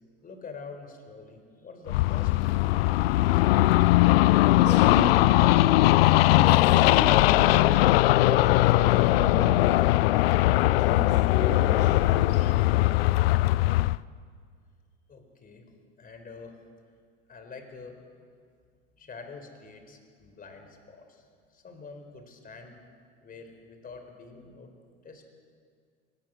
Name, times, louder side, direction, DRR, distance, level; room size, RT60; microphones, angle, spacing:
voice 1, 0.2-3.4 15.1-15.7 16.0-16.6 17.3-18.1 19.0-22.8 23.2-25.2, left 4 dB, 30° left, 6 dB, 4.2 m, -46 dB
sound 1, 1.9-14.0, left 17 dB, 75° left, 0.5 m, -20 dB
voice 2, 4.5-5.4 6.3-10.3 10.7-12.4, left 4 dB, 50° left, 0 dB, 2.9 m, -34 dB
24.0 x 19.0 x 6.4 m, 2.1 s
hypercardioid pair, 90°, 30 cm